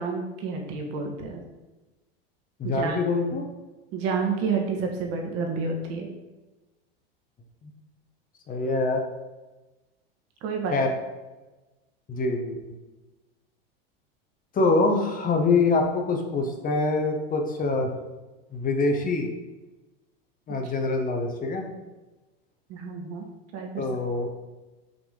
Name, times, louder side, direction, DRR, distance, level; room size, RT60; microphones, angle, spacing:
voice 1, 0.0-1.4 2.6-3.0 3.9-6.1 10.4-10.8 22.7-23.3 23.5-23.9, right 5 dB, 55° right, 2 dB, 1.6 m, -29 dB
voice 2, 2.6-3.4 7.6-7.7 8.5-9.0 10.7-10.9 12.1-12.6 14.5-17.9 18.5-19.3 20.5-21.7 23.8-24.3, left 3 dB, 30° left, 4 dB, 1.0 m, -24 dB
6.0 x 3.4 x 5.1 m, 1.1 s
hypercardioid pair, 105°, 30 cm